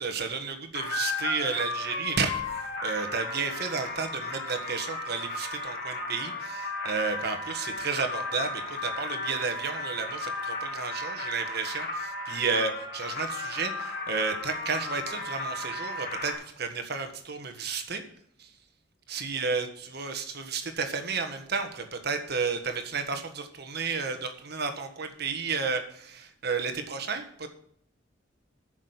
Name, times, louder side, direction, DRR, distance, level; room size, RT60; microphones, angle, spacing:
voice 1, 0.0-18.0 18.4-18.5 19.1-19.7 19.9-27.5, right 5 dB, 60° right, 6 dB, 1.5 m, -32 dB
sound 1, 0.7-16.3, left 2 dB, 55° left, 3.4 m, -35 dB
9.9 x 6.3 x 7.9 m, 0.66 s
head